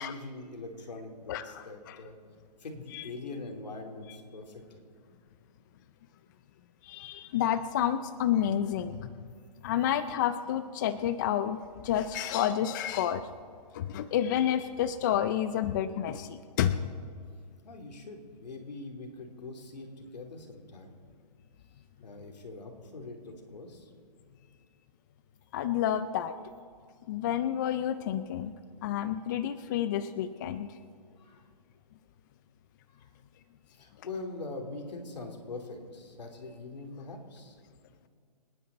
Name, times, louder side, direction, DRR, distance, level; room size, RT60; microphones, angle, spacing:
voice 1, 0.0-2.2 2.6-4.9 17.6-20.9 22.0-23.9 31.2-31.4 32.9-33.1 33.7-37.6, left 2 dB, 80° left, 3 dB, 3.1 m, -43 dB
voice 2, 1.3-2.0 2.9-3.0 6.8-9.1 9.6-13.2 13.7-16.8 25.5-26.3 27.1-28.5 28.8-30.7, left 10 dB, 30° left, 12 dB, 0.4 m, -30 dB
28.0 x 9.6 x 4.1 m, 2.2 s
hypercardioid pair, 150°, 21 cm